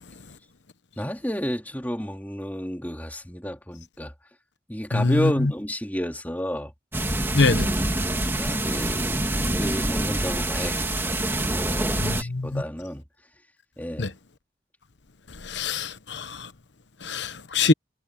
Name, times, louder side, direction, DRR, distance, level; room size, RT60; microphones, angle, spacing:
voice 1, 1.0-4.1 4.7-6.7 8.3-13.1 13.8-14.1, equal, 10° left, 3.3 m, -31 dB
sound 1, 6.9-12.2, right 1 dB, 15° right, 2.3 m, -26 dB
voice 2, 7.3-7.7 12.0-12.6 14.0-14.1 15.5-16.3 17.0-17.7, left 3 dB, 90° left, 1.0 m, -23 dB
head